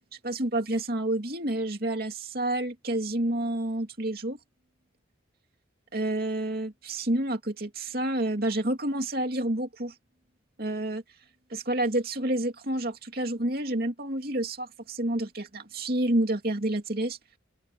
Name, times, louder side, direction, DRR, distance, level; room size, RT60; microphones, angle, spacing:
voice 1, 0.2-4.4 5.9-9.9 10.6-11.0 11.5-17.2, right 1 dB, 50° right, 2.7 m, -29 dB
open air
head